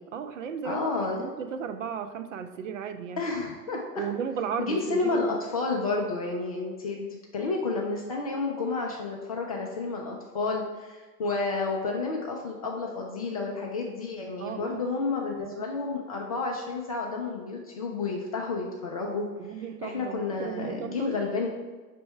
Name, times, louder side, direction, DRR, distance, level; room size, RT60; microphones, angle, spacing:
voice 1, 0.1-3.2 4.0-5.3 14.4-14.8 15.4-15.7 19.4-21.2, right 7 dB, 50° right, 9 dB, 0.5 m, -35 dB
voice 2, 0.6-1.2 3.2-4.1 4.6-19.3 19.8-21.5, left 3 dB, 25° left, 0 dB, 0.4 m, -30 dB
5.3 x 3.4 x 5.5 m, 1.3 s
figure-of-eight pair, 100°, 50 cm